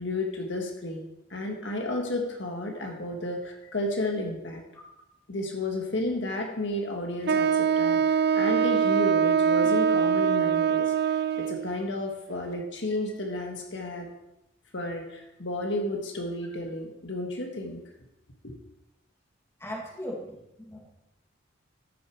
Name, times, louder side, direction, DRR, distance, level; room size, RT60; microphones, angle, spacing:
voice 1, 0.0-4.6 5.3-14.1 14.7-17.8 18.4-18.5, left 1 dB, 70° left, 2 dB, 1.7 m, -32 dB
Wind instrument woodwind instrument, 7.3-11.7, right 7 dB, 55° right, 0.4 m, -23 dB
voice 2, 19.6-20.8, equal, 15° left, -1 dB, 2.2 m, -38 dB
14.0 x 6.7 x 4.7 m, 0.89 s
head